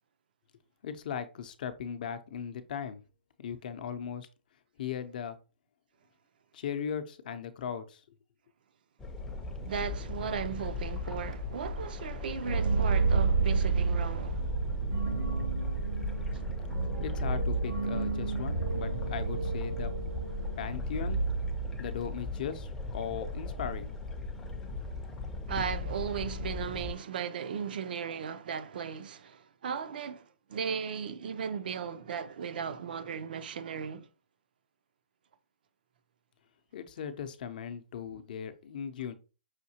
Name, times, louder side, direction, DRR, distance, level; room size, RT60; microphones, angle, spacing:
voice 1, 0.8-3.0 3.4-4.3 4.8-5.4 6.5-8.2 17.0-19.9 20.6-21.2 21.8-23.9 36.7-39.1, left 8 dB, 50° left, 0.6 m, -38 dB
sound 1, 9.0-26.9, left 3 dB, 5° left, 0.5 m, -38 dB
voice 2, 9.6-14.5 25.5-34.1, right 7 dB, 55° right, 0.5 m, -36 dB
sound 2, 12.4-22.1, right 4 dB, 85° right, 2.1 m, -30 dB
5.7 x 2.7 x 2.8 m
hypercardioid pair, 155°, 6 cm